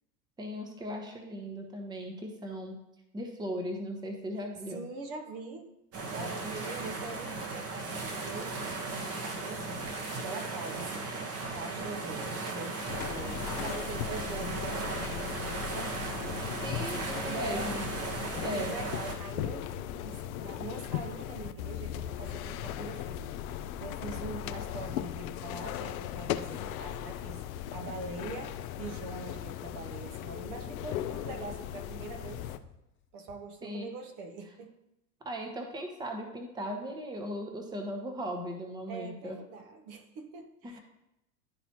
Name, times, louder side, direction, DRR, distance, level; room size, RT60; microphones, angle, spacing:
voice 1, 0.4-2.8 3.1-4.8 16.6-17.8 18.4-18.8 33.6-33.9 35.2-39.4 40.6-40.8, equal, 10° right, 4 dB, 0.9 m, -38 dB
voice 2, 4.7-5.7 6.1-11.2 11.5-16.0 17.3-17.8 18.2-27.4 27.7-32.5 33.1-34.7 38.9-40.8, right 3 dB, 45° right, 6 dB, 1.1 m, -43 dB
sound 1, 5.9-19.2, right 3 dB, 30° right, 1.2 m, -36 dB
sound 2, 12.9-32.6, left 11 dB, 60° left, 0.6 m, -38 dB
Run, 25.5-33.5, left 7 dB, 25° left, 1.1 m, -55 dB
11.5 x 4.1 x 3.0 m, 0.86 s
hypercardioid pair, 90°, 48 cm